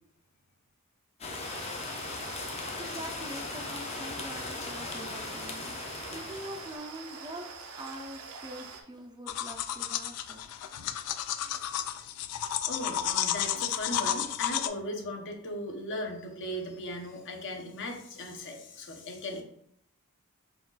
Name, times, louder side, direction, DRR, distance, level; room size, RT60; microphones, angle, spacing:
sound 1, 1.2-6.8, left 3 dB, 30° left, 0.6 m, -38 dB
sound 2, 1.4-8.8, right 4 dB, 75° right, 0.6 m, -45 dB
voice 1, 2.3-7.5 7.7-10.4, right 1 dB, 20° right, 4 dB, 0.4 m, -44 dB
sound 3, 9.3-14.7, left 10 dB, 80° left, 0.3 m, -32 dB
voice 2, 12.7-19.4, left 1 dB, 55° left, 2 dB, 0.8 m, -37 dB
4.4 x 2.4 x 3.9 m, 0.72 s
head